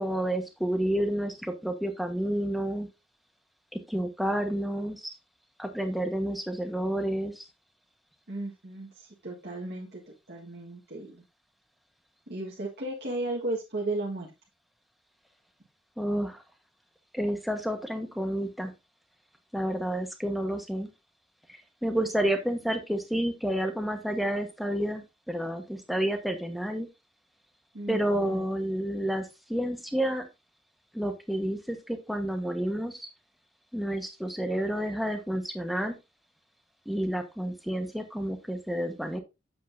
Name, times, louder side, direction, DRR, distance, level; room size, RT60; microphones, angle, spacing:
voice 1, 0.0-2.9 3.7-5.1 5.6-7.4 16.0-16.4 17.1-18.7 19.5-20.9 21.8-26.9 27.9-30.3 30.9-33.1 33.7-36.0 36.9-39.2, right 1 dB, ahead, 5 dB, 1.2 m, -30 dB
voice 2, 8.3-10.0 10.3-11.2 12.3-14.3 27.7-28.5, right 2 dB, 55° right, -4 dB, 1.7 m, -35 dB
7.9 x 7.9 x 2.6 m, 0.24 s
head